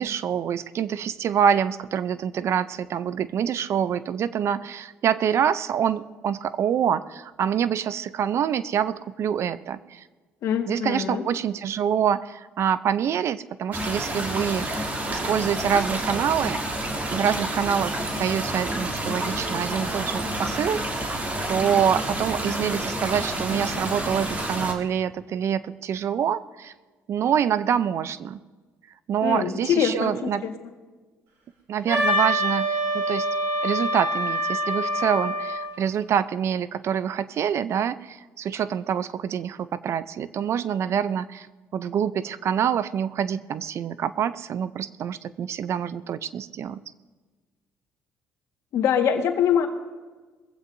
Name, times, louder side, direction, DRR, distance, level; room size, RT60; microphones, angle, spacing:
voice 1, 0.0-10.0 10.7-16.6 17.1-26.7 27.1-28.4 29.1-30.4 31.7-33.3 33.6-41.5 41.7-46.8, right 8 dB, 55° right, 15 dB, 0.6 m, -26 dB
voice 2, 10.4-11.2 29.2-30.5 48.7-49.7, left 8 dB, 70° left, 4 dB, 1.6 m, -23 dB
sound 1, 13.7-24.7, right 1 dB, 30° right, 2.8 m, -29 dB
Wind instrument woodwind instrument, 31.9-35.7, equal, 80° right, 3.7 m, -25 dB
21.5 x 15.5 x 2.7 m, 1.3 s
supercardioid pair, 85°, 5 cm